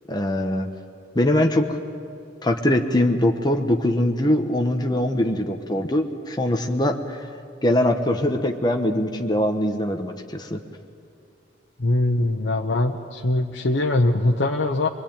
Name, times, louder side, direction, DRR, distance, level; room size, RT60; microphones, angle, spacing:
voice 1, 0.1-0.7 1.1-1.8 2.4-7.2 7.6-10.6, left 1 dB, 25° left, 3 dB, 1.3 m, -22 dB
voice 2, 11.8-14.9, left 2 dB, 85° left, 1 dB, 1.1 m, -22 dB
24.5 x 22.5 x 8.9 m, 2.5 s
head